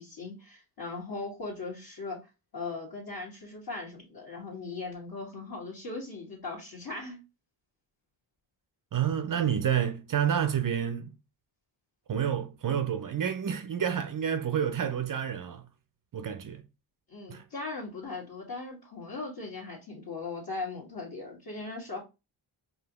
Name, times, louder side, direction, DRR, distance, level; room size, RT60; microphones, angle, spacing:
voice 1, 0.0-2.2 2.5-7.2 17.1-22.0, left 3 dB, 50° left, 1.7 m, -39 dB
voice 2, 8.9-11.1 12.1-15.7 16.1-16.6 17.3-17.4, right 8 dB, 45° right, 0.5 m, -29 dB
4.8 x 2.7 x 2.9 m
wide cardioid pair, 95°, 49 cm